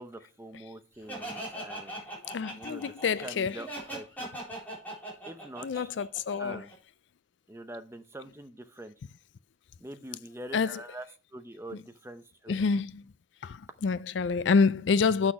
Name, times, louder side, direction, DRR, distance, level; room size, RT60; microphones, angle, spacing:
voice 1, 0.0-2.1 2.5-2.9 3.2-4.3 5.3-5.9 6.4-6.7 7.5-8.9 9.8-11.1 11.3-12.7, right 1 dB, 15° right, 0.7 m, -44 dB
Laughter, 1.1-6.7, right 1 dB, 10° left, 3.8 m, -40 dB
voice 2, 2.3-3.6 5.6-6.6 10.5-10.8 11.7-11.8 12.5-13.0 13.4-15.3, left 5 dB, 75° left, 0.4 m, -27 dB
8.2 x 6.3 x 4.7 m
head